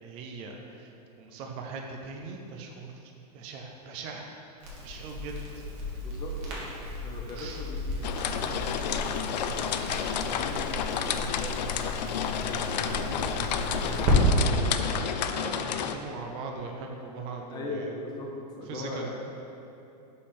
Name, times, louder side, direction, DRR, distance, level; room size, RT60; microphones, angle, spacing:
voice 1, 0.0-0.9 1.2-4.3 4.8-5.4 7.4-7.6 12.4-12.8 15.3-17.9 18.7-19.1, right 4 dB, 25° right, 2 dB, 0.4 m, -40 dB
Crackle, 4.6-14.2, left 1 dB, 45° right, 1.4 m, -33 dB
voice 2, 6.0-6.7 7.0-7.9 8.2-9.8 10.3-11.6 12.2-13.4 13.7-15.3 15.6-15.8 17.5-18.3 18.6-19.1, left 2 dB, 20° left, -1 dB, 0.7 m, -40 dB
sound 1, 8.0-16.0, left 8 dB, 85° left, 0.4 m, -31 dB
sound 2, 11.4-15.4, equal, 5° right, 1.0 m, -46 dB
5.2 x 4.3 x 5.2 m, 2.8 s
supercardioid pair, 160°, 21 cm